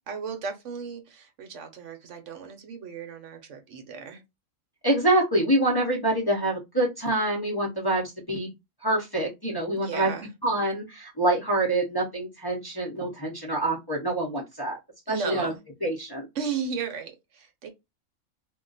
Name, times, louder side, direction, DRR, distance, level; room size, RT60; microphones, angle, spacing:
voice 1, 0.1-4.2 9.8-10.3 15.1-15.6 16.3-17.7, right 6 dB, 70° right, 1.0 m, -35 dB
voice 2, 4.8-8.5 8.8-10.1 10.4-14.8 15.1-15.5 15.8-16.3, right 1 dB, 20° left, 0.7 m, -26 dB
2.5 x 2.2 x 3.9 m
omnidirectional pair, 1.4 m